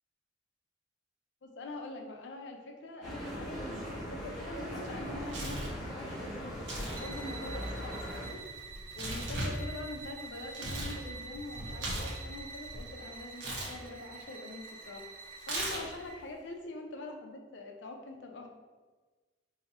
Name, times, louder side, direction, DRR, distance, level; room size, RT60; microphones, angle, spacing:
voice 1, 1.4-8.4 8.9-15.1 15.5-18.5, left 2 dB, 75° left, 2 dB, 0.5 m, -44 dB
sound 1, 3.0-8.3, equal, ahead, 0.9 m, -40 dB
Tearing, 4.9-5.8 6.6-7.0 7.3-11.0 11.3-12.8 13.4-13.7 15.4-16.1, right 1 dB, 85° right, 0.7 m, -38 dB
sound 2, 6.9-16.3, right 4 dB, 50° right, 0.4 m, -47 dB
2.7 x 2.4 x 4.1 m, 1.3 s
head